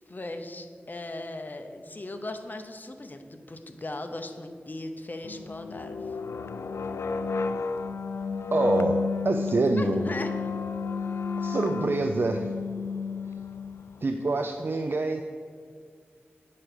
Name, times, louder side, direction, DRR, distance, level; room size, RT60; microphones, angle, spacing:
voice 1, 0.1-6.2 9.5-10.5, left 2 dB, 45° left, 6 dB, 0.8 m, -38 dB
sound 1, 5.2-14.0, left 5 dB, 85° left, 0.3 m, -32 dB
voice 2, 8.5-9.0 9.2-10.0 11.4-12.5 14.0-15.2, right 3 dB, 60° right, 5 dB, 0.4 m, -26 dB
8.4 x 6.1 x 4.8 m, 2.1 s
cardioid pair, 50°, 4 cm